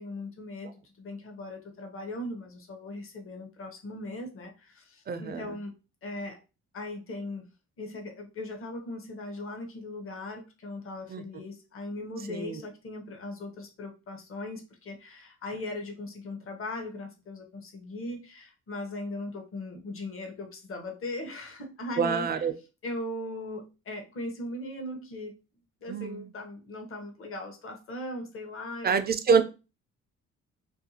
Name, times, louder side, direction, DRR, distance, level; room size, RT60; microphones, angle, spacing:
voice 1, 0.0-5.7 6.0-6.4 6.7-7.5 7.8-22.4 22.8-25.4 25.8-29.1, left 1 dB, 45° left, 0.8 m, -39 dB
voice 2, 5.1-5.6 11.1-11.4 12.3-12.6 22.0-22.5 25.9-26.3 28.8-29.4, right 5 dB, 35° right, 0.4 m, -27 dB
2.6 x 2.2 x 2.7 m
cardioid pair, 90°, 30 cm